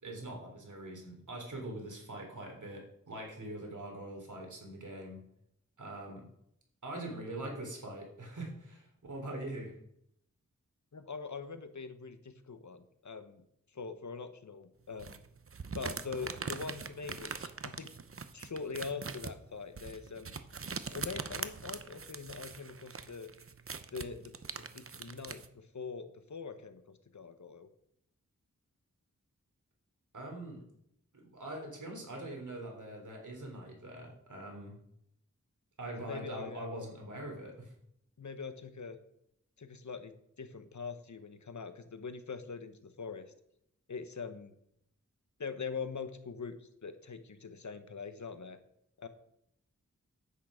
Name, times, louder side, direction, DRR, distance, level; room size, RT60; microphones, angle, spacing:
voice 1, 0.0-5.2 5.8-6.2 6.8-9.8 30.1-30.6 31.1-34.8 35.8-37.7, right 1 dB, 80° right, 1 dB, 3.4 m, -43 dB
voice 2, 10.9-13.4 13.7-15.2 15.7-18.0 18.3-20.4 20.9-23.3 23.9-24.3 24.7-27.7 36.0-36.7 38.2-39.0 39.6-43.3 43.9-44.5 45.4-48.6 49.0-49.1, left 5 dB, 75° left, 10 dB, 1.1 m, -43 dB
sound 1, 15.0-25.5, right 5 dB, 50° right, 0.7 m, -42 dB
10.0 x 8.7 x 5.0 m, 0.74 s
wide cardioid pair, 75°, 30 cm